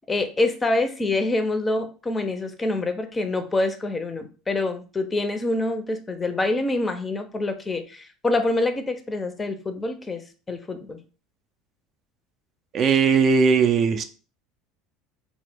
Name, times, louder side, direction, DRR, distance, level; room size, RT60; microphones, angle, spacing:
voice 1, 0.1-10.2 10.5-11.0, left 2 dB, 20° left, 7 dB, 0.4 m, -26 dB
voice 2, 12.7-14.0, right 5 dB, 45° right, 7 dB, 0.3 m, -18 dB
2.0 x 2.0 x 3.2 m, 0.36 s
hypercardioid pair, 75°, 0 cm